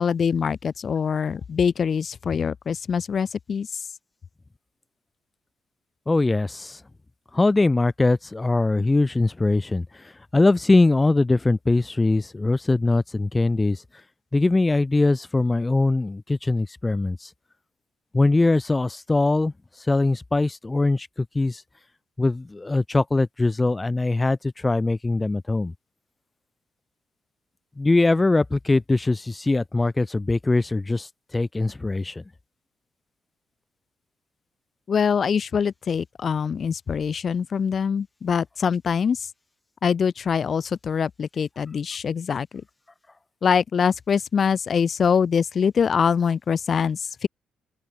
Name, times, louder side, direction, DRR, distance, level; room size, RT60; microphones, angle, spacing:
voice 1, 0.0-3.7 34.9-39.3 39.8-42.5 43.4-47.3, left 6 dB, 45° left, 3.7 m, -24 dB
voice 2, 6.1-6.8 7.3-9.9 10.3-13.8 14.3-17.3 18.1-19.5 19.9-21.6 22.2-25.7 27.8-31.1 31.3-32.2, left 2 dB, 20° left, 3.9 m, -21 dB
open air
cardioid pair, 90°, 0 cm